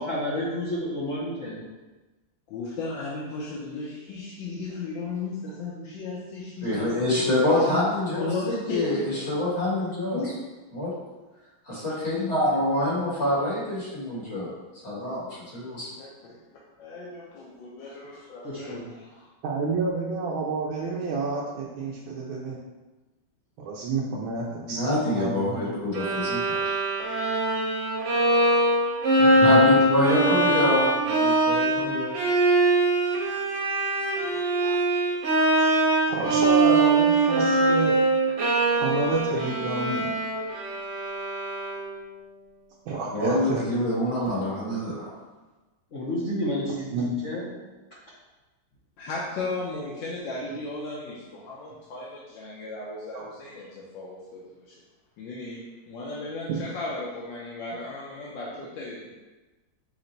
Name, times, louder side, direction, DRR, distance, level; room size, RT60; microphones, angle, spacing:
voice 1, 0.0-1.6 18.4-18.8 29.7-30.7 36.2-36.4 45.9-46.9 47.2-47.5, left 1 dB, 55° left, -7 dB, 0.8 m, -29 dB
voice 2, 2.5-7.0 7.6-7.8 8.1-9.2 10.1-10.3 16.0-19.2 49.0-54.8 55.2-59.1, left 3 dB, 75° left, -6 dB, 1.4 m, -35 dB
voice 3, 6.6-8.3 8.7-10.2 10.7-10.9 11.7-14.5 14.8-15.9 24.7-26.8 28.0-28.4 29.4-32.1 43.1-45.1, left 1 dB, 40° left, -7 dB, 1.4 m, -26 dB
voice 4, 19.4-22.6 23.6-24.8 25.1-25.6 28.1-28.2 29.2-29.6 34.2-34.8 35.3-35.7 36.0-38.0 38.7-40.1 42.9-43.6 46.9-47.2 50.5-50.6 53.1-53.3 56.5-56.6, right 4 dB, 85° right, -4 dB, 1.4 m, -30 dB
Bowed string instrument, 25.9-42.0, right 2 dB, 55° right, 0.8 m, -22 dB
5.9 x 2.2 x 3.9 m, 1.2 s
omnidirectional pair, 2.1 m